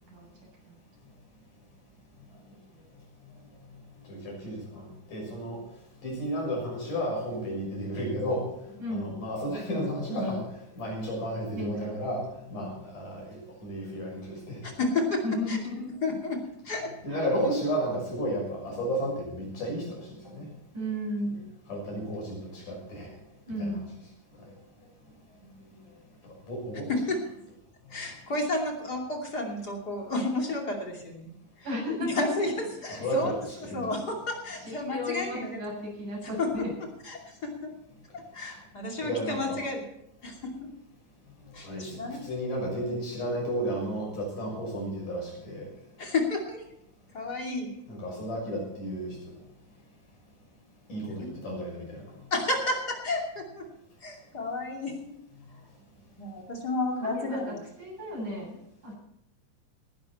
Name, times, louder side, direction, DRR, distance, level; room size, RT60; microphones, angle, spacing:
voice 1, 4.1-5.6 6.0-10.5 10.8-14.7 17.0-20.5 21.7-23.1 23.6-23.8 24.4-24.5 26.5-26.9 33.0-33.4 33.7-33.9 39.0-39.6 41.6-45.7 47.9-49.2 50.9-52.0, equal, 80° left, -1 dB, 8.1 m, -33 dB
voice 2, 11.6-12.0 15.2-15.9 17.1-17.3 20.7-21.4 23.5-23.9 31.6-32.5 33.0-33.1 34.6-36.7 57.1-58.9, left 1 dB, 80° right, -2 dB, 9.0 m, -34 dB
voice 3, 14.6-15.6 16.0-16.9 26.9-27.2 27.9-31.3 32.1-33.3 33.6-35.8 36.4-36.7 37.0-37.7 38.1-39.9 40.2-40.7 41.5-42.3 46.0-46.7 47.1-47.7 51.2-51.3 52.3-53.7 54.0-55.1 56.2-57.6, left 2 dB, 30° left, 0 dB, 3.0 m, -31 dB
19.0 x 11.5 x 4.3 m, 0.81 s
omnidirectional pair, 3.6 m